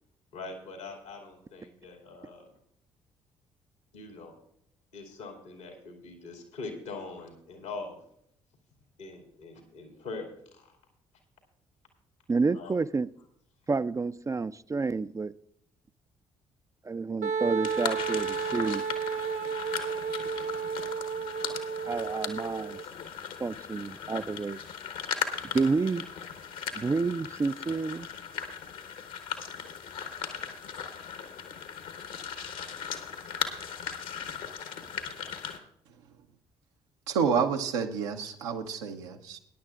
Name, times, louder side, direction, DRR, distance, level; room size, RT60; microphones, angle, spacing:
voice 1, 0.3-2.5 3.9-4.4 4.9-8.0 9.0-10.7 12.5-12.7, left 3 dB, 90° left, 2 dB, 2.4 m, -42 dB
voice 2, 12.3-13.1 13.7-15.3 16.8-18.8 21.9-22.8 23.4-24.6 25.5-26.1 26.7-28.1, right 4 dB, 20° right, 15 dB, 0.4 m, -29 dB
Wind instrument woodwind instrument, 17.2-22.8, right 6 dB, 50° right, 0.8 m, -32 dB
sound 1, 17.6-35.6, left 7 dB, 65° left, 1.2 m, -38 dB
voice 3, 37.1-39.4, right 6 dB, 80° right, 3 dB, 0.9 m, -29 dB
21.0 x 10.5 x 2.5 m, 0.72 s
hypercardioid pair, 45°, 15 cm